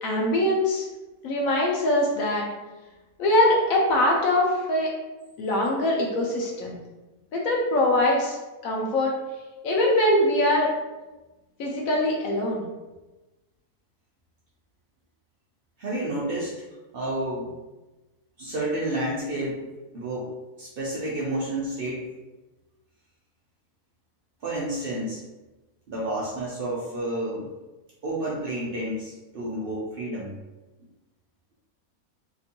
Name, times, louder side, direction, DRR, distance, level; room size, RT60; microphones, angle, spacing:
voice 1, 0.0-0.9 1.2-2.5 3.2-4.9 5.4-6.8 7.3-8.4 8.6-9.1 9.6-10.7 11.6-12.7, left 1 dB, 70° left, -2 dB, 0.9 m, -22 dB
voice 2, 15.8-16.6 16.9-17.5 18.4-19.7 19.9-20.3 20.6-22.1 24.4-25.2 25.9-27.5 28.0-30.3, right 1 dB, 75° right, -5 dB, 0.5 m, -30 dB
2.9 x 2.5 x 2.7 m, 1.1 s
omnidirectional pair, 1.6 m